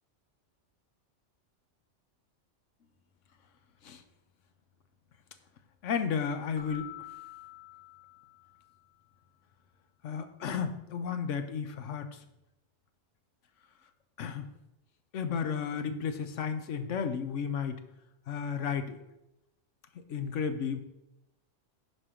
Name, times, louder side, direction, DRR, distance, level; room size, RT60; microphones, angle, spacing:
voice 1, 5.8-6.9 10.0-12.2 14.2-14.4 15.1-17.8 18.3-19.0 19.9-20.8, left 6 dB, 85° left, 8 dB, 1.1 m, -33 dB
Keyboard (musical), 6.6-9.0, left 13 dB, 35° left, 0.4 m, -48 dB
10.5 x 4.5 x 5.1 m, 0.91 s
omnidirectional pair, 1.3 m